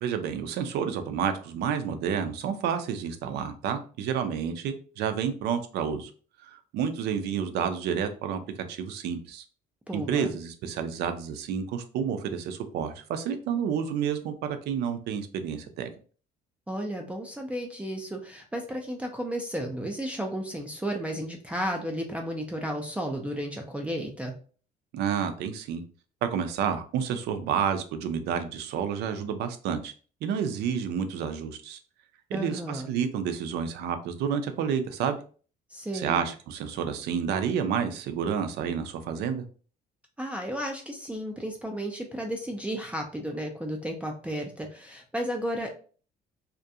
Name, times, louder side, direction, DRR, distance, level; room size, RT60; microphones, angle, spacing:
voice 1, 0.0-6.1 6.4-8.4 8.7-9.4 9.9-15.9 24.9-25.8 26.2-29.9 30.2-31.8 32.3-35.2 35.9-39.4, right 7 dB, 75° right, 8 dB, 0.5 m, -30 dB
voice 2, 9.9-10.3 16.7-24.3 32.3-32.9 35.7-36.3 40.2-45.7, equal, 5° right, 0 dB, 0.4 m, -33 dB
2.4 x 2.1 x 2.6 m, 0.40 s
cardioid pair, 110°, 17 cm